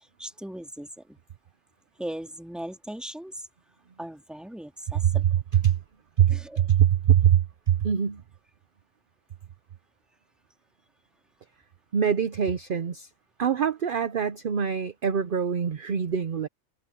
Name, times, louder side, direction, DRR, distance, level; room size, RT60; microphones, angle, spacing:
voice 1, 0.2-1.2 2.0-3.3 4.0-5.2 6.3-6.6, right 1 dB, ahead, 1.9 m, -38 dB
voice 2, 5.0-5.8 6.2-8.2 11.9-13.1 13.4-16.5, right 9 dB, 50° right, 0.8 m, -23 dB
omnidirectional pair, 1.4 m